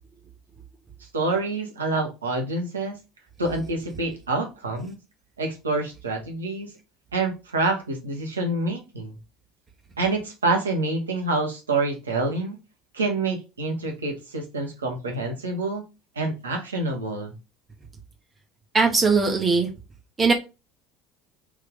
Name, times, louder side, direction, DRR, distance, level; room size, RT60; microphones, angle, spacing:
voice 1, 1.1-3.0 3.4-5.0 5.4-6.7 7.1-9.1 10.0-12.6 12.9-15.8 16.1-17.3, right 2 dB, 80° right, 1 dB, 1.0 m, -27 dB
voice 2, 18.7-19.7 20.2-20.3, right 4 dB, 25° right, 2 dB, 0.9 m, -19 dB
3.6 x 2.8 x 3.6 m, 0.28 s
figure-of-eight pair, 65°, 0 cm